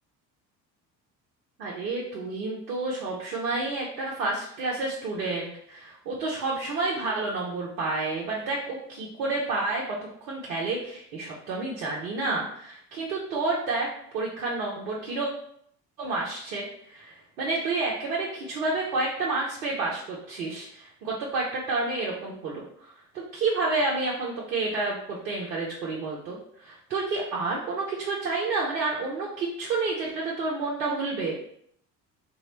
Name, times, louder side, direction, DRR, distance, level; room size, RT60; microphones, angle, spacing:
voice 1, 1.6-9.8 10.3-13.9 14.1-15.3 16.0-31.4, right 3 dB, 75° right, -3 dB, 0.8 m, -30 dB
3.9 x 2.0 x 3.0 m, 0.66 s
figure-of-eight pair, 55°, 49 cm